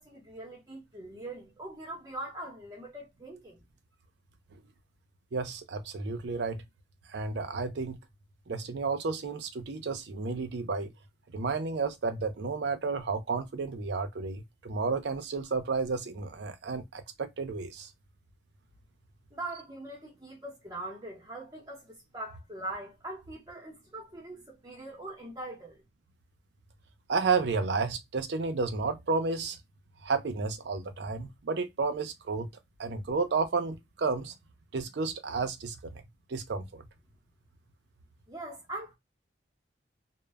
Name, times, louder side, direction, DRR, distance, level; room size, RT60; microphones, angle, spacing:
voice 1, 0.0-3.6 19.3-25.8 38.3-39.0, right 1 dB, 20° right, 0.7 m, -42 dB
voice 2, 5.3-6.6 7.1-8.0 8.5-10.9 11.3-17.9 27.1-29.6 30.0-32.5 32.8-34.3 34.7-36.0 36.3-36.8, right 4 dB, 65° right, 0.5 m, -32 dB
2.0 x 2.0 x 3.3 m
head